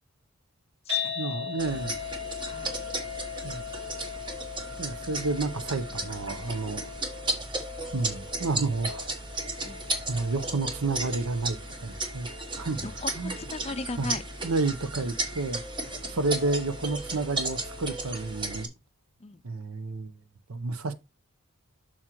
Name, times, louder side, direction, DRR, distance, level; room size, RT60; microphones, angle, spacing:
sound 1, 0.9-17.1, left 9 dB, 50° right, 4.6 m, -41 dB
voice 1, 1.1-2.0 3.4-3.6 4.8-6.9 7.9-9.0 10.1-12.3 12.6-12.9 13.2-13.3 14.0-14.2 14.4-18.7 19.4-20.2 20.5-20.9, right 3 dB, 90° right, 0.9 m, -30 dB
sound 2, 1.6-18.7, right 2 dB, 20° right, 1.2 m, -35 dB
voice 2, 2.4-2.9 5.0-5.1 9.6-9.9 12.8-14.2 16.0-16.2 19.2-19.4, left 3 dB, 30° left, 0.4 m, -38 dB
7.6 x 6.3 x 3.1 m
head